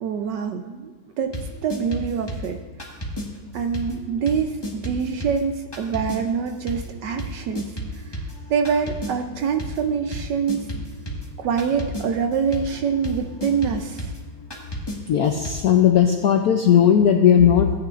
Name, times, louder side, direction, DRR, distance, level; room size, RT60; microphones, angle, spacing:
voice 1, 0.0-1.3 1.6-2.6 3.5-7.6 8.1-8.2 8.5-10.7 11.4-14.1, right 6 dB, 70° right, 6 dB, 1.1 m, -25 dB
sound 1, 1.3-3.3 3.7-15.5, equal, 15° left, 1.3 m, -34 dB
voice 2, 15.1-17.7, left 9 dB, 75° left, 3 dB, 0.8 m, -16 dB
16.5 x 9.5 x 2.5 m, 1.3 s
omnidirectional pair, 2.3 m